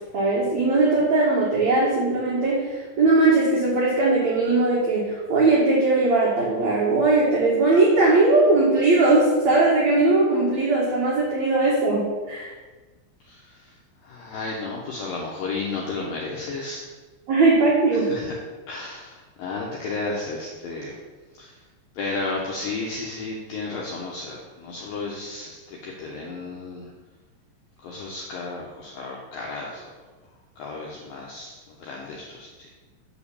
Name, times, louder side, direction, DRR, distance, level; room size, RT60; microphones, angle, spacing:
voice 1, 0.1-12.5 17.3-18.1, right 2 dB, 65° right, -5 dB, 1.8 m, -19 dB
voice 2, 13.3-13.7 14.0-16.8 18.0-18.3 18.7-21.0 21.4-21.5 22.0-26.9 27.8-29.9 30.6-32.7, left 3 dB, 85° left, -2 dB, 2.0 m, -33 dB
9.3 x 5.1 x 7.0 m, 1.3 s
omnidirectional pair, 5.7 m